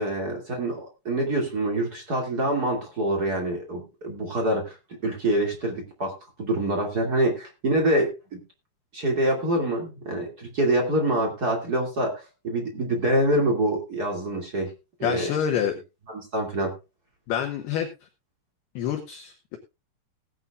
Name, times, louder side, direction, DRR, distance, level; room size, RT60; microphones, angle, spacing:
voice 1, 0.0-4.8 5.0-8.4 8.9-14.7 15.0-15.3 16.1-16.7, right 1 dB, 40° right, 2 dB, 1.4 m, -26 dB
voice 2, 15.0-15.7 17.3-17.9 18.7-19.6, left 9 dB, 70° left, 4 dB, 2.7 m, -27 dB
18.5 x 9.9 x 2.4 m, 0.27 s
omnidirectional pair, 5.8 m